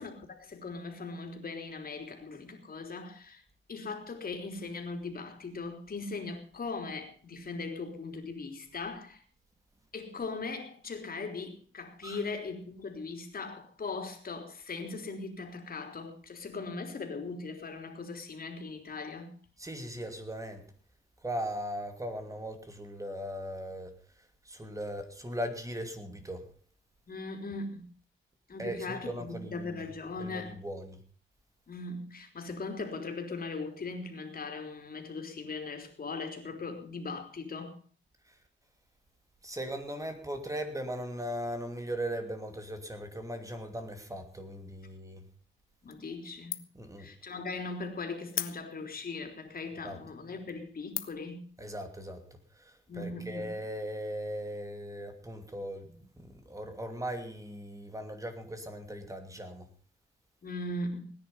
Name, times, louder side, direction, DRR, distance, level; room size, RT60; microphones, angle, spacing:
voice 1, 0.0-3.4 3.7-9.2 9.9-19.4 27.1-27.9 28.5-30.6 31.7-37.8 45.8-46.6 47.0-51.5 52.9-53.5 60.4-61.1, left 3 dB, 45° left, 3.7 m, -39 dB
voice 2, 19.6-20.7 21.2-26.5 28.6-29.8 30.2-31.0 38.3-38.4 39.4-45.2 46.7-47.1 49.8-50.0 51.6-52.3 52.5-59.7, equal, 15° right, 2.7 m, -39 dB
sound 1, 45.9-46.3 46.5-46.9 47.3-47.4 48.3-49.0 49.6-49.7 50.3-50.5 50.9-51.3, left 11 dB, 75° left, 1.1 m, -37 dB
18.0 x 10.0 x 5.6 m
cardioid pair, 100°, 21 cm